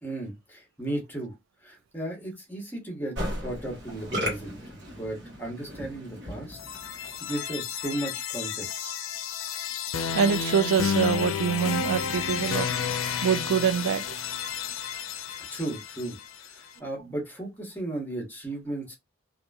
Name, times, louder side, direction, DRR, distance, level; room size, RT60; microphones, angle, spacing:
voice 1, 0.0-1.3 1.6-6.6 6.9-8.9 15.5-19.0, right 1 dB, 10° left, 1.0 m, -35 dB
Musical instrument, 3.2-7.4, equal, 60° right, 1.1 m, -36 dB
sound 1, 6.5-16.5, left 7 dB, 85° left, 0.4 m, -31 dB
voice 2, 10.1-12.7 13.2-14.0, right 7 dB, 85° right, 0.3 m, -25 dB
2.8 x 2.5 x 2.3 m
head